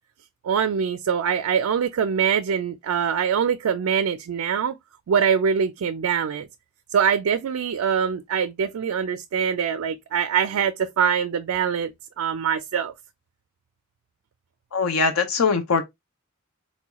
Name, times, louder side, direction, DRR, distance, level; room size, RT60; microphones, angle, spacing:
voice 1, 0.4-4.7 5.1-6.5 6.9-11.9 12.2-12.9, right 7 dB, 85° right, 0.4 m, -23 dB
voice 2, 14.7-15.8, left 5 dB, 80° left, 0.6 m, -21 dB
4.1 x 2.3 x 2.9 m
head